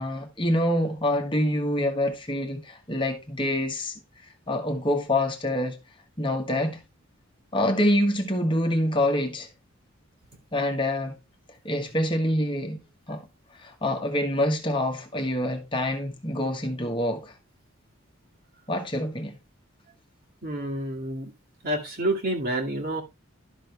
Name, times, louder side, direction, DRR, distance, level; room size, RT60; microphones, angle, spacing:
voice 1, 0.0-3.9 4.5-5.8 6.2-6.8 7.5-9.5 10.5-11.2 11.6-12.8 13.1-13.3 13.6-17.3 18.7-19.4, left 1 dB, 25° left, 1.3 m, -26 dB
voice 2, 20.4-21.3 21.6-23.0, right 1 dB, 45° right, 2.2 m, -28 dB
12.0 x 6.4 x 3.3 m
head